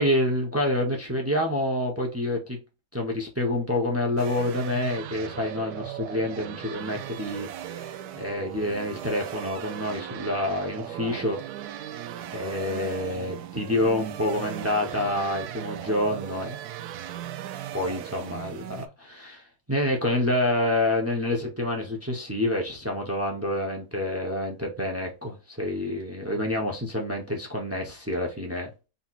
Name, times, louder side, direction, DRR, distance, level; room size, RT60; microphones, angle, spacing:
voice 1, 0.0-2.6 2.9-11.4 12.2-16.6 17.7-28.7, left 1 dB, 25° right, 0.3 m, -28 dB
sound 1, 4.2-18.9, right 11 dB, 75° right, 1.0 m, -38 dB
4.2 x 3.9 x 2.4 m
omnidirectional pair, 1.8 m